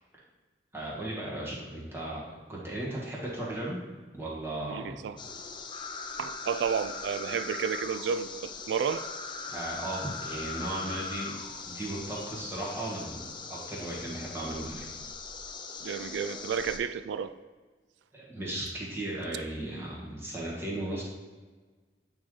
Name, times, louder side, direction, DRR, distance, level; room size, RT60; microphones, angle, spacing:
voice 1, 0.7-3.8 4.1-4.9 9.5-11.4 11.6-14.8 18.1-21.0, right 1 dB, 15° right, 1.4 m, -36 dB
voice 2, 4.7-5.2 6.2-9.1 15.8-17.3, right 7 dB, 85° right, 0.3 m, -31 dB
sound 1, 5.2-16.8, left 4 dB, 25° left, 0.4 m, -40 dB
8.5 x 3.7 x 3.2 m
head